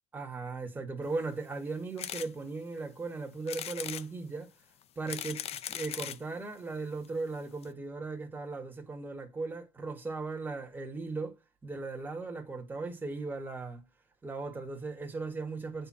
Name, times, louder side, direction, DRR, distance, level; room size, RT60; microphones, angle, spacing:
voice 1, 0.1-4.5 4.9-11.3 11.6-13.8 14.2-15.9, right 3 dB, 10° right, 1.6 m, -37 dB
sound 1, 2.0-2.3 2.8-2.9 3.5-4.1 4.8-6.2 7.0-7.1 7.3-7.4 7.6-7.7, left 10 dB, 35° left, 0.6 m, -39 dB
8.6 x 4.5 x 6.1 m
cardioid pair, 145°, 18 cm